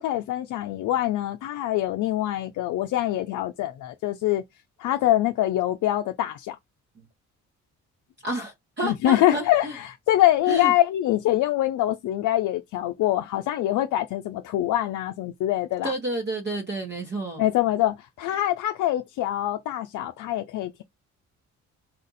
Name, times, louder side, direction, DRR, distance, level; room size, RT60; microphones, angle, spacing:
voice 1, 0.0-4.4 4.8-6.6 8.8-15.9 17.4-20.8, left 14 dB, 80° left, 0.5 m, -24 dB
voice 2, 8.2-9.7 10.5-10.7 15.8-17.4, right 1 dB, 35° right, 1.2 m, -30 dB
4.3 x 2.5 x 4.0 m
cardioid pair, 90°, 30 cm